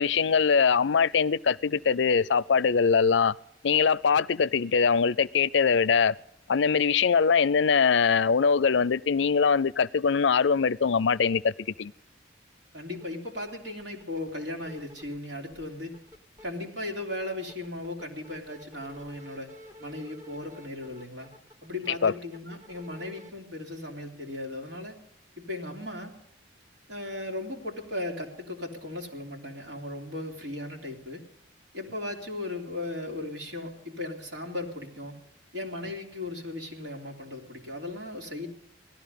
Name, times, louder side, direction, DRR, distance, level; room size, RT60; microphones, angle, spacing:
voice 1, 0.0-3.3 3.6-6.1 6.5-11.9 22.0-22.1, left 5 dB, 70° left, 0.5 m, -22 dB
voice 2, 12.7-16.0 16.4-19.5 19.8-21.3 21.6-24.9 25.4-26.1 26.9-31.2 31.7-35.1 35.5-38.5, left 2 dB, 70° right, 3.3 m, -37 dB
sound 1, 12.9-13.1 13.3-15.2 15.5-16.5 16.8-23.3, left 1 dB, 15° right, 1.3 m, -51 dB
18.0 x 13.5 x 5.4 m
head